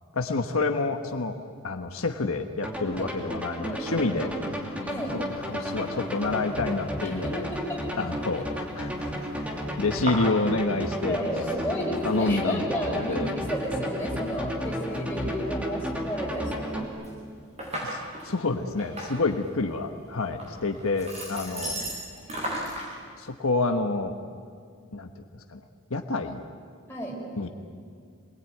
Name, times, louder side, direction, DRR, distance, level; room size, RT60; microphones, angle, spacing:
voice 1, 0.1-1.4 1.6-4.3 5.0-7.5 8.0-11.5 12.0-13.3 17.8-21.8 23.2-24.2 24.9-25.6 25.9-26.4 27.4-27.5, left 3 dB, 75° left, 5 dB, 1.3 m, -28 dB
sound 1, 2.6-16.8, equal, 5° right, 2.7 m, -33 dB
voice 2, 3.6-4.3 4.8-5.1 7.0-7.8 11.0-16.9 26.9-27.2, equal, 10° left, -4 dB, 6.4 m, -32 dB
sound 2, 5.1-22.9, right 1 dB, 30° right, 7.9 m, -40 dB
27.5 x 21.0 x 9.3 m, 2.2 s
head